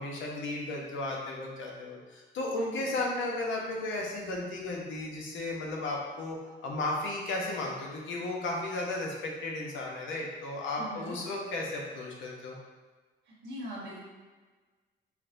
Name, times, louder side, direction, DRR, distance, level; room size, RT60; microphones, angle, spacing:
voice 1, 0.0-12.6, left 2 dB, 75° left, -2 dB, 0.9 m, -34 dB
voice 2, 2.6-2.9 10.8-11.2 13.3-14.0, equal, 60° right, -4 dB, 1.3 m, -42 dB
5.6 x 2.2 x 2.6 m, 1.3 s
cardioid pair, 90°, 20 cm